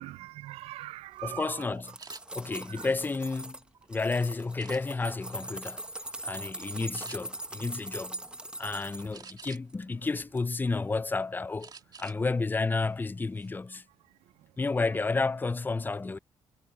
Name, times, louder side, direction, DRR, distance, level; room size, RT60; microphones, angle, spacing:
voice 1, 0.0-1.7 2.5-2.9, right 16 dB, 80° right, 0.5 m, -42 dB
voice 2, 1.2-1.9 2.3-3.6 3.9-5.8 6.2-8.2 8.6-11.7 12.0-13.8 14.6-16.2, left 3 dB, 20° left, 0.5 m, -31 dB
sound 1, 1.5-3.6 3.9-9.1 9.6-10.1 10.4-10.5, right 1 dB, 10° right, 1.1 m, -41 dB
sound 2, 2.0-2.2 2.9-3.8 4.6-5.2 5.7-5.9 6.3-6.4 6.9-7.2 9.1-9.8 10.3-11.1 11.6-12.2 12.5-12.7 13.1-13.5, right 5 dB, 40° right, 2.4 m, -49 dB
supercardioid pair, 75°, 10 cm